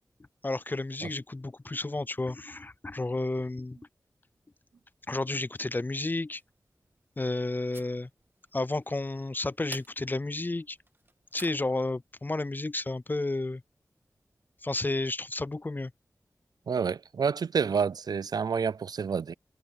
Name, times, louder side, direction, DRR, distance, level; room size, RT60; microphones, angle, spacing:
voice 1, 0.4-3.8 5.1-6.4 7.2-8.1 8.5-10.8 11.3-13.6 14.6-15.9, left 2 dB, 30° left, 0.4 m, -31 dB
sound 1, 6.4-11.9, right 2 dB, 35° right, 2.5 m, -52 dB
voice 2, 16.7-19.3, right 6 dB, 75° right, 0.4 m, -28 dB
cardioid pair, 45°, 7 cm